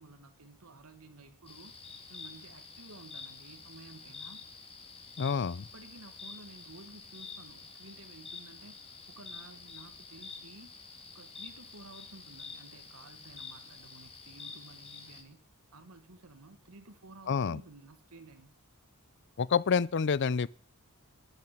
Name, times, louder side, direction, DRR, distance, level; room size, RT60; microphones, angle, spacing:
voice 1, 0.0-1.7 2.1-4.4 5.7-10.8 11.1-18.5, right 2 dB, 75° right, 1.6 m, -53 dB
sound 1, 1.5-15.2, left 5 dB, 25° left, 2.3 m, -48 dB
voice 2, 5.2-5.7 17.3-17.6 19.4-20.5, left 6 dB, 55° left, 0.5 m, -28 dB
12.0 x 11.0 x 5.9 m
head